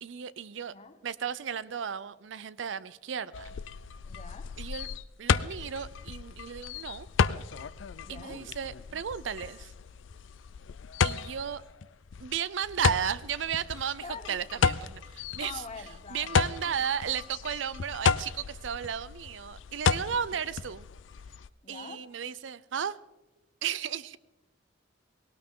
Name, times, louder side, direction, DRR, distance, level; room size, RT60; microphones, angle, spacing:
voice 1, 0.0-0.7 1.0-3.6 4.6-4.9 5.2-7.1 8.1-9.7 11.0-11.6 12.2-15.6 16.1-20.9 21.7-23.0 23.6-24.2, right 8 dB, 75° right, 17 dB, 0.5 m, -34 dB
voice 2, 0.7-1.0 4.0-4.5 8.0-8.4 14.0-14.4 15.4-16.8 20.1-20.2 21.6-22.0, left 4 dB, 35° left, 9 dB, 1.2 m, -45 dB
sound 1, 3.3-21.5, left 6 dB, 85° left, 0.5 m, -33 dB
18.0 x 18.0 x 3.7 m, 1.0 s
head